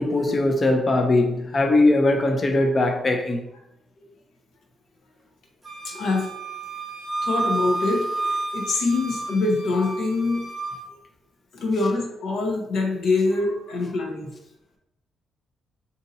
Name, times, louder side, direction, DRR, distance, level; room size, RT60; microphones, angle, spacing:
voice 1, 0.0-3.4, left 2 dB, 30° left, 0.5 m, -20 dB
Wind instrument woodwind instrument, 5.6-10.9, right 2 dB, 5° right, 1.0 m, -30 dB
voice 2, 5.8-6.3 7.2-10.5 11.5-14.3, left 3 dB, 75° left, 0.8 m, -24 dB
2.7 x 2.7 x 3.8 m
cardioid pair, 150°, 0 cm